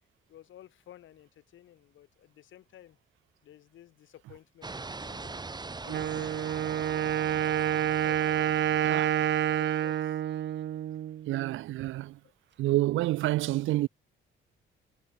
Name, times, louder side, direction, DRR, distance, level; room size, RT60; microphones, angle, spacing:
voice 1, 0.3-3.0 3.4-7.1 8.0-8.6 8.9-10.2 10.7-10.9, left 12 dB, 75° left, 7.0 m, -53 dB
sound 1, 4.6-10.0, right 3 dB, 20° right, 1.9 m, -42 dB
Wind instrument woodwind instrument, 5.9-11.6, right 11 dB, 65° right, 1.5 m, -28 dB
voice 2, 11.3-12.2 12.6-13.9, right 16 dB, 80° right, 0.5 m, -28 dB
cardioid pair, 90°, 20 cm